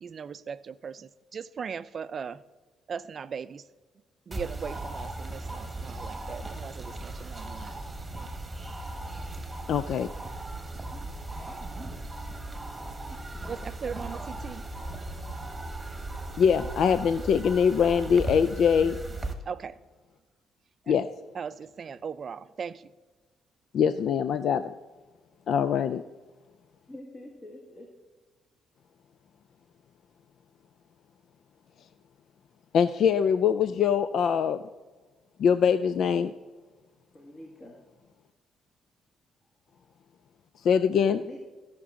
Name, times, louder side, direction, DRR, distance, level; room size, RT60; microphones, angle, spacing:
voice 1, 0.0-2.4 2.9-3.7 4.3-7.8 8.1-8.4 13.5-14.7 16.2-16.3 19.5-19.8 20.8-21.0 21.3-22.9, right 6 dB, 50° right, 14 dB, 0.4 m, -39 dB
sound 1, 4.3-19.3, right 2 dB, 15° right, 1.3 m, -37 dB
voice 2, 9.7-10.1 16.4-19.0 20.9-21.1 23.7-24.7 25.5-26.0 32.7-34.6 35.4-36.3 40.6-41.2, left 7 dB, 70° left, 12 dB, 0.3 m, -23 dB
voice 3, 26.9-27.9 37.1-37.8 39.7-39.9 41.2-41.4, left 1 dB, 35° left, 0 dB, 1.7 m, -46 dB
14.5 x 5.9 x 3.7 m, 1.3 s
cardioid pair, 90°, 0 cm